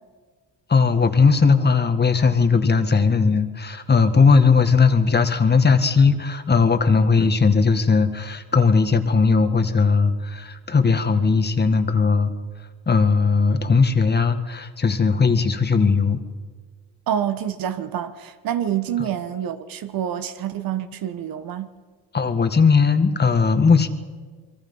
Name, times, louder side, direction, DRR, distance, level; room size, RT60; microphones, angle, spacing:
voice 1, 0.7-12.3 12.9-16.2 22.1-23.9, left 5 dB, 25° left, 1.9 m, -18 dB
voice 2, 17.1-21.7, right 10 dB, 65° right, 1.5 m, -27 dB
27.5 x 23.0 x 5.7 m
cardioid pair, 100°, 37 cm